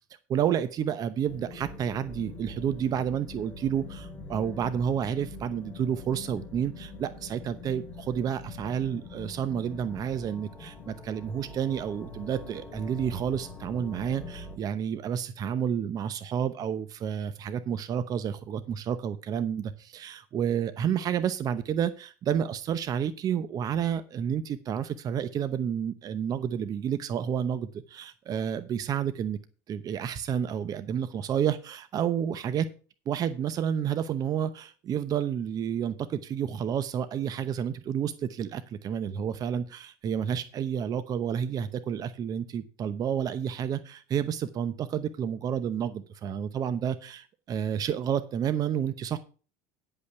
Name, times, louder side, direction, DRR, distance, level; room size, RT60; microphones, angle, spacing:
voice 1, 0.3-29.4 29.7-32.7 33.1-49.2, right 8 dB, 40° right, 12 dB, 0.8 m, -30 dB
sound 1, 1.3-14.6, left 3 dB, 20° left, 2.4 m, -44 dB
9.9 x 5.5 x 6.9 m, 0.38 s
supercardioid pair, 100°, 9 cm